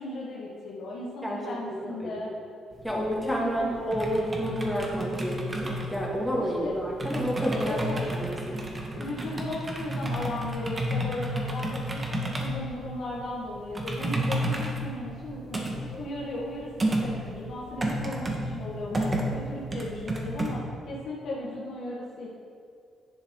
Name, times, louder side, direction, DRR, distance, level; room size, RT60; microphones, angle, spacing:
voice 1, 0.0-2.3 2.9-4.0 6.4-6.8 7.3-8.0 8.8-22.3, left 1 dB, 70° left, -5 dB, 1.5 m, -36 dB
voice 2, 1.2-2.1 2.8-8.6, equal, ahead, -4 dB, 2.3 m, -30 dB
sound 1, 2.7-20.5, right 1 dB, 25° right, 1.6 m, -32 dB
11.0 x 7.1 x 3.8 m, 2.4 s
cardioid pair, 90°, 0 cm